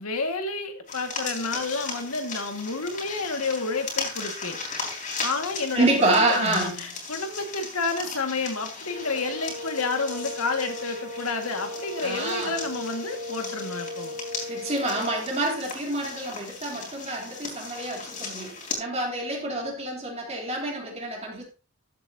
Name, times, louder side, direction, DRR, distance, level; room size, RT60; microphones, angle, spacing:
voice 1, 0.0-4.6 5.2-14.2, left 3 dB, 85° left, 2.0 m, -30 dB
sound 1, 0.9-18.7, left 4 dB, 35° left, 3.7 m, -37 dB
voice 2, 5.7-6.9 12.0-12.6 14.5-21.4, right 2 dB, 30° right, 3.4 m, -27 dB
sound 2, 8.8-15.4, left 1 dB, 85° right, 4.3 m, -37 dB
13.5 x 8.3 x 2.8 m
head